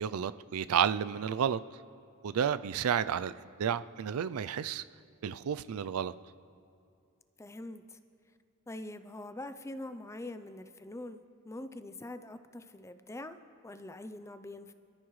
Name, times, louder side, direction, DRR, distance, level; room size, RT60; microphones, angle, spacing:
voice 1, 0.0-1.6 2.2-3.3 3.6-4.8 5.2-6.1, right 8 dB, 80° right, 14 dB, 0.4 m, -31 dB
voice 2, 7.4-8.0 8.7-13.4 13.6-14.7, left 1 dB, 15° left, 10 dB, 0.5 m, -44 dB
27.0 x 13.5 x 3.2 m, 2.5 s
head